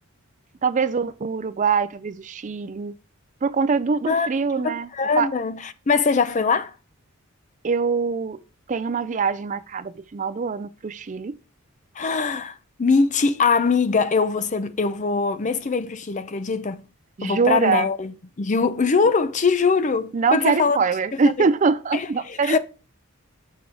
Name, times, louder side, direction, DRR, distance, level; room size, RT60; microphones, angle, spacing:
voice 1, 0.6-2.9 3.4-4.9 5.2-5.3 7.6-8.4 8.7-11.3 17.2-17.9 20.1-22.6, right 5 dB, 35° right, 0.4 m, -23 dB
voice 2, 4.6-6.7 11.9-16.8 17.2-20.8 21.1-21.5 21.9-22.6, left 4 dB, 35° left, 0.5 m, -22 dB
7.1 x 6.0 x 3.7 m
head